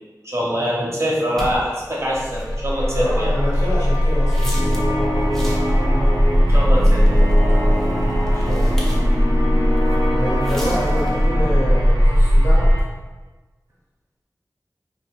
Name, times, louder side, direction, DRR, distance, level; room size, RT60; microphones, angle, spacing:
voice 1, 0.2-3.3 6.5-7.6, equal, 45° right, -5 dB, 0.7 m, -24 dB
sound 1, 1.4-4.9 5.2-5.8 6.4-9.2 9.6-10.1 10.4-11.2, equal, 5° left, 0.6 m, -36 dB
sound 2, 2.1-12.8, equal, 75° right, 0.4 m, -18 dB
voice 2, 2.9-4.9 8.3-8.9 10.1-12.7, equal, 50° left, -8 dB, 1.2 m, -27 dB
sound 3, 4.5-11.9, equal, 70° left, 0.8 m, -26 dB
2.6 x 2.2 x 3.0 m, 1.2 s
wide cardioid pair, 45°, 7 cm